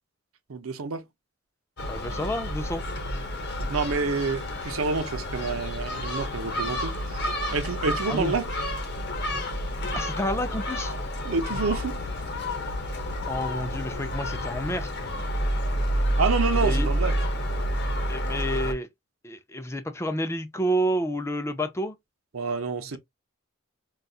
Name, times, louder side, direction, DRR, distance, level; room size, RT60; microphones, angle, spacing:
voice 1, 0.5-1.0 3.7-8.5 11.2-12.0 16.2-17.1 22.3-23.0, right 4 dB, 90° right, 0.7 m, -28 dB
Gull seagull, 1.8-18.7, equal, 55° left, 0.8 m, -29 dB
voice 2, 1.9-2.8 8.1-8.4 9.9-10.9 13.3-14.9 16.6-16.9 18.1-18.9 19.2-21.9, equal, 15° left, 0.4 m, -29 dB
4.0 x 2.3 x 2.3 m
head